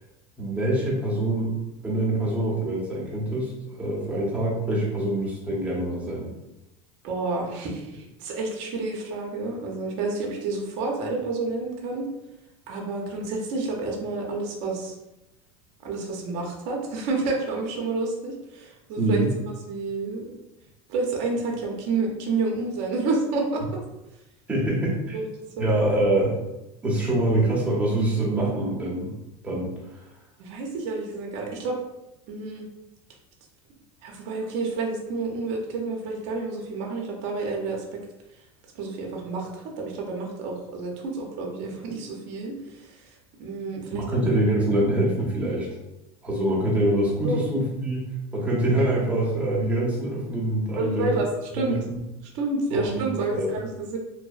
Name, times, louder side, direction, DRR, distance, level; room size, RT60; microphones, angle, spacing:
voice 1, 0.4-1.5 1.8-6.3 19.0-19.3 24.5-25.2 25.6-26.4 26.8-29.1 29.4-29.7 43.6-45.7 46.2-51.1 51.6-52.0 52.7-53.5, right 1 dB, 10° right, -6 dB, 0.6 m, -25 dB
voice 2, 7.0-12.0 12.7-14.9 15.8-19.2 19.7-20.3 20.9-23.8 25.1-25.2 25.6-25.7 30.4-31.8 32.3-32.7 34.0-38.0 38.8-43.0 43.4-44.0 47.2-47.4 50.8-51.3 51.5-51.8 52.3-54.0, right 3 dB, 50° right, 0 dB, 0.5 m, -29 dB
2.6 x 2.0 x 2.3 m, 0.92 s
supercardioid pair, 160°, 15 cm